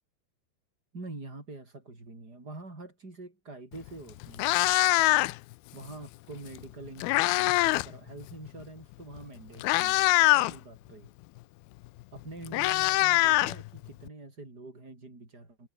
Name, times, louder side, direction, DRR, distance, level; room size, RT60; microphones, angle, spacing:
voice 1, 0.9-4.6 5.1-5.4 5.7-11.1 12.1-15.7, right 2 dB, 20° right, 6.5 m, -45 dB
Meow, 3.7-3.9 4.2-5.5 6.6-7.9 8.2-8.5 9.2-9.3 9.6-10.5 11.8-11.9 12.2-14.1, left 19 dB, 85° left, 2.2 m, -24 dB
omnidirectional pair, 5.2 m